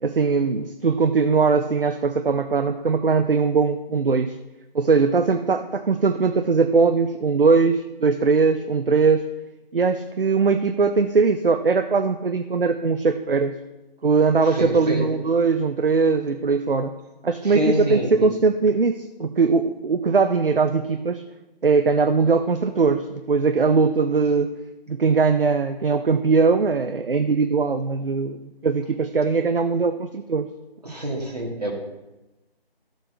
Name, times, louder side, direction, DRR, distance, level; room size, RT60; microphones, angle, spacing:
voice 1, 0.0-4.4 4.7-9.3 9.7-13.6 14.0-16.9 17.2-21.2 21.6-24.5 24.9-30.5, right 4 dB, 65° right, 9 dB, 0.6 m, -20 dB
voice 2, 14.4-15.1 17.4-18.3 30.8-31.7, equal, 40° right, 0 dB, 1.9 m, -26 dB
14.0 x 7.2 x 2.8 m, 1.0 s
figure-of-eight pair, 165°, 31 cm